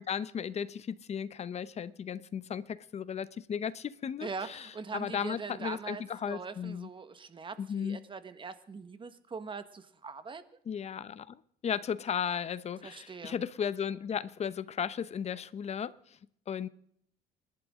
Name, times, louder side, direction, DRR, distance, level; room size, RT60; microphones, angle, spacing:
voice 1, 0.0-6.9 7.6-8.1 10.7-16.2 16.5-16.7, left 7 dB, 40° left, 0.9 m, -35 dB
voice 2, 4.2-10.4 12.8-13.3, right 5 dB, 30° right, 1.5 m, -42 dB
29.0 x 11.5 x 3.8 m
cardioid pair, 110°, 17 cm